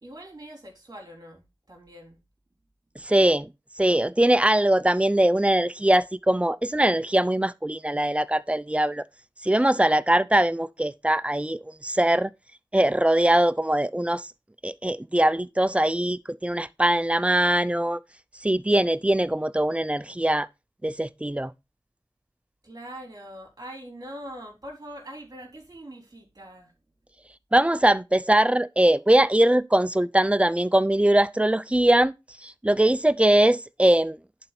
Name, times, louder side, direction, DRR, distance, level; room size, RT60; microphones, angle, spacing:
voice 1, 0.0-2.2 22.6-26.7, right 1 dB, 45° right, 3.6 m, -42 dB
voice 2, 3.0-3.5 3.8-9.0 9.4-12.3 12.7-14.2 14.6-18.0 18.4-20.5 20.8-21.5 27.5-32.1 32.4-34.2, right 1 dB, 15° right, 0.4 m, -21 dB
11.0 x 4.3 x 4.0 m
wide cardioid pair, 70°, 9 cm